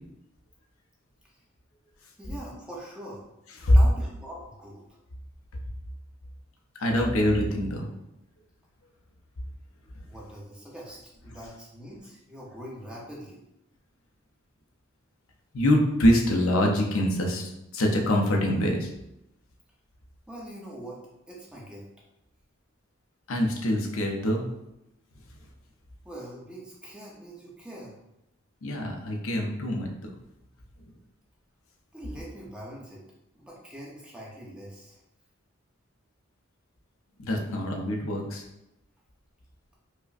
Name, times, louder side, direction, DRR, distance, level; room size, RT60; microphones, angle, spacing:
voice 1, 2.2-3.2 3.6-4.8 10.0-13.4 20.3-21.0 21.3-21.8 26.0-28.0 31.9-33.0 33.3-35.0, right 1 dB, 5° right, -5 dB, 0.6 m, -43 dB
voice 2, 6.8-7.9 15.5-18.9 23.3-24.4 28.6-29.9 37.2-38.4, left 1 dB, 75° left, 1 dB, 0.6 m, -24 dB
4.7 x 2.1 x 2.5 m, 0.87 s
head